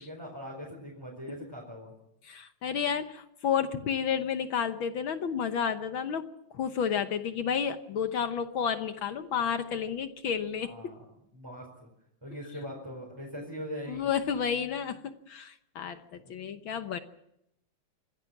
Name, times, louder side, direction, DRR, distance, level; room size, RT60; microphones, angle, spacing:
voice 1, 0.0-1.9 10.6-11.0 11.3-11.9 12.2-14.1 16.2-16.3, equal, 10° right, -2 dB, 4.4 m, -41 dB
voice 2, 2.2-6.3 6.5-10.9 13.4-13.5 13.9-17.0, left 7 dB, 65° left, 9 dB, 1.3 m, -31 dB
26.5 x 15.5 x 7.3 m, 0.80 s
omnidirectional pair, 3.5 m